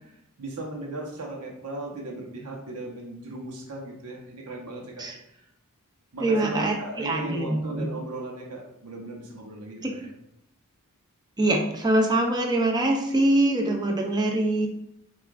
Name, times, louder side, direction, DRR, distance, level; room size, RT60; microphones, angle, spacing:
voice 1, 0.1-5.4 6.1-10.1, right 2 dB, 90° right, -1 dB, 1.0 m, -37 dB
voice 2, 6.2-7.9 9.8-10.0 11.4-14.7, right 1 dB, 20° right, 1 dB, 0.5 m, -24 dB
6.2 x 2.4 x 2.5 m, 0.80 s
head